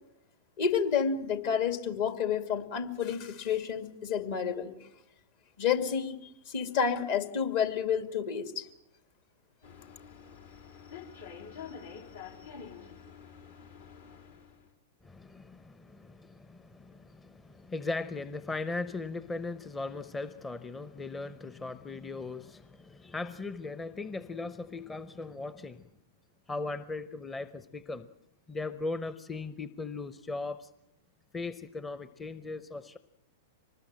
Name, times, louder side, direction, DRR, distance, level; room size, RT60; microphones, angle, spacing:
voice 1, 0.6-4.7 5.6-8.7, left 7 dB, 55° left, 8 dB, 2.3 m, -30 dB
sound 1, 9.6-14.7, left 6 dB, 75° left, 3.3 m, -47 dB
voice 2, 15.0-25.9 26.5-28.1 28.5-30.7 31.3-33.0, left 3 dB, 15° left, 13 dB, 0.8 m, -38 dB
25.0 x 20.0 x 7.6 m, 0.81 s
figure-of-eight pair, 100°, 0 cm